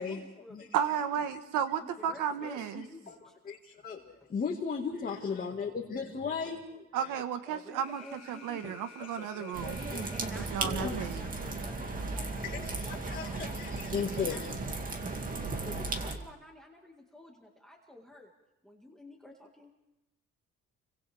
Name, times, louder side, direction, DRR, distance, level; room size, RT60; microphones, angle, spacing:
voice 1, 0.0-0.7 1.0-1.1 1.8-3.3 7.5-9.0 10.1-14.4 14.9-15.2 15.5-18.3 18.6-19.7, left 1 dB, ahead, 0 dB, 2.0 m, -51 dB
voice 2, 0.7-2.9 6.9-8.0 8.3-9.8 10.3-11.3, right 9 dB, 75° right, 8 dB, 1.6 m, -33 dB
voice 3, 3.4-7.2 9.4-10.1 10.6-11.1 12.4-14.6, left 5 dB, 25° left, -1 dB, 1.9 m, -36 dB
Alarm, 7.8-10.8, left 7 dB, 55° left, 1.7 m, -52 dB
sound 1, 9.5-16.2, right 3 dB, 25° right, 2.4 m, -36 dB
30.0 x 24.5 x 3.5 m, 0.93 s
cardioid pair, 155°, 32 cm